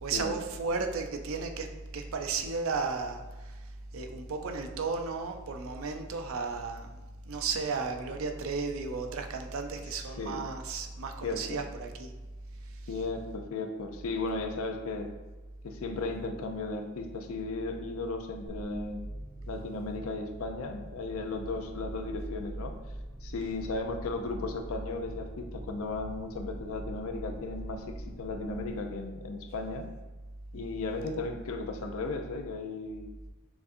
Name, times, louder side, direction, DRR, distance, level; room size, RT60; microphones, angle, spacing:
voice 1, 0.0-1.7 1.9-3.2 3.5-3.6 3.9-6.9 7.3-12.1, right 4 dB, 65° right, 5 dB, 0.5 m, -34 dB
voice 2, 9.9-10.4 11.2-11.6 12.9-15.1 15.6-19.0 19.5-22.7 23.2-29.9 30.5-33.1, left 3 dB, 70° left, 5 dB, 0.5 m, -35 dB
sound 1, 18.5-28.7, right 1 dB, 10° left, 1.1 m, -44 dB
6.8 x 2.5 x 2.6 m, 1.2 s
head